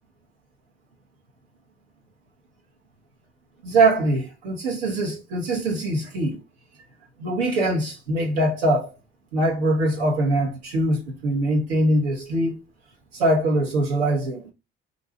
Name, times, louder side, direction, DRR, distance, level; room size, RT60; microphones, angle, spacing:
voice 1, 3.6-6.4 7.2-8.9 9.3-12.6 13.1-14.5, right 1 dB, 80° right, 0.8 m, -22 dB
2.6 x 2.2 x 2.7 m
hypercardioid pair, 55°, 30 cm